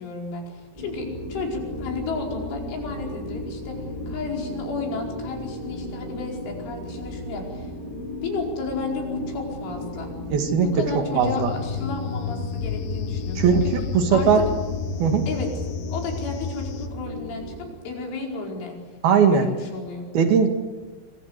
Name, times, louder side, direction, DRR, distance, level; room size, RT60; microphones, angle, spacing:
voice 1, 0.0-3.8 4.1-7.7 8.2-10.1 10.6-13.7 14.1-14.4 15.3-15.5 15.9-18.8 19.2-20.1, left 4 dB, 85° left, 1 dB, 7.3 m, -33 dB
sound 1, 0.8-17.7, left 1 dB, 10° left, 5.6 m, -35 dB
voice 2, 10.3-10.7 11.0-11.5 13.4-14.5 15.0-15.3 19.0-19.5 20.1-20.5, right 6 dB, 60° right, 6 dB, 3.6 m, -19 dB
sound 2, 11.2-16.9, left 6 dB, 65° left, 2.6 m, -31 dB
27.0 x 23.5 x 8.2 m, 1.3 s
omnidirectional pair, 5.4 m